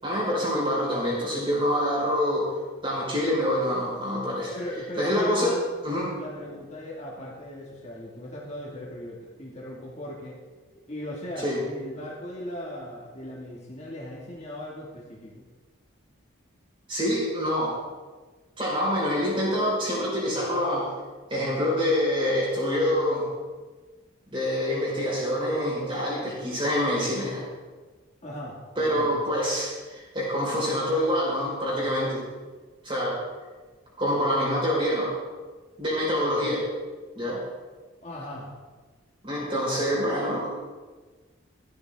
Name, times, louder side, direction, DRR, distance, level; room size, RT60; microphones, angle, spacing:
voice 1, 0.0-2.5 2.8-4.5 5.0-5.6 5.8-6.1 11.4-11.6 16.9-17.8 18.6-20.9 21.3-23.3 24.3-27.4 28.8-32.2 32.8-33.2 34.0-35.1 35.8-36.7 37.2-37.4 39.2-40.6, equal, 25° right, -5 dB, 5.3 m, -26 dB
voice 2, 4.5-5.6 6.2-10.4 10.9-15.4 28.2-29.2 38.0-38.5, left 1 dB, 35° left, -4 dB, 2.5 m, -38 dB
16.0 x 12.5 x 3.9 m, 1.3 s
head